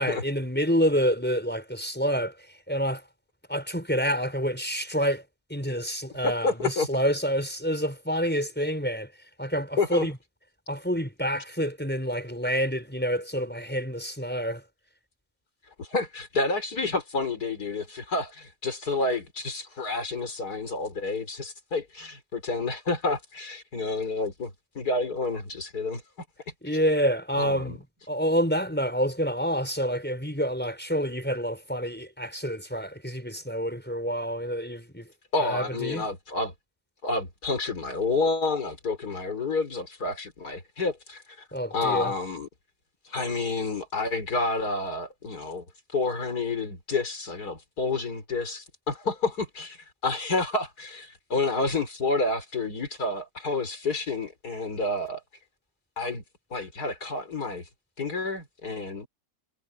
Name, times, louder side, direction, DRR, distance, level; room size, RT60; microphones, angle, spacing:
voice 1, 0.0-3.1 3.5-9.1 9.4-10.2 10.7-14.6 26.6-35.1 35.4-36.1 41.5-42.1, equal, 5° left, 5.6 m, -28 dB
voice 2, 6.4-6.9 9.8-10.1 15.8-26.0 27.4-27.8 35.3-36.5 37.0-41.2 41.7-42.5 43.0-45.7 45.9-55.2 56.0-56.2 56.5-57.7 58.0-59.1, left 3 dB, 80° left, 4.6 m, -29 dB
omnidirectional pair, 1.6 m